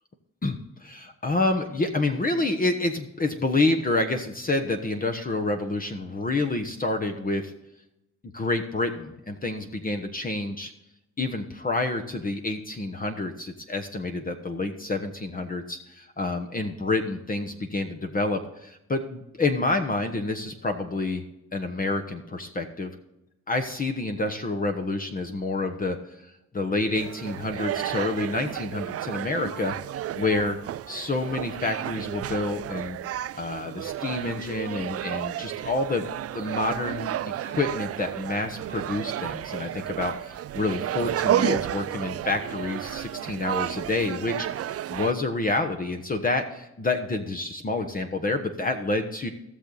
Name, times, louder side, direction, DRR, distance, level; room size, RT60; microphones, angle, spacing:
voice 1, 0.4-7.5 8.3-10.7 11.2-21.2 21.5-22.9 23.5-29.7 30.2-30.6 30.9-33.0 33.3-36.1 36.3-37.1 37.4-49.3, left 2 dB, 30° left, 5 dB, 1.1 m, -28 dB
sound 1, 26.9-45.1, right 12 dB, 50° right, 0.5 m, -32 dB
16.5 x 6.8 x 4.0 m, 0.90 s
cardioid pair, 90°, 30 cm